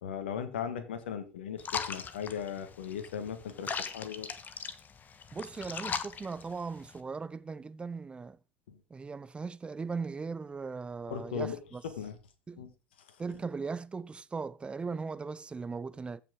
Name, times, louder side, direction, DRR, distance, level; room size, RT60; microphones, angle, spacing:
voice 1, 0.0-4.3 8.7-8.8 11.1-11.6 11.8-12.2 12.6-12.7, left 8 dB, 70° left, 1.5 m, -37 dB
sound 1, 1.6-7.0, left 6 dB, 30° left, 1.2 m, -39 dB
voice 2, 5.3-8.4 8.9-11.8 12.5-12.7 13.2-16.2, right 4 dB, 15° right, 0.6 m, -38 dB
15.0 x 5.8 x 3.8 m
figure-of-eight pair, 75°, 6 cm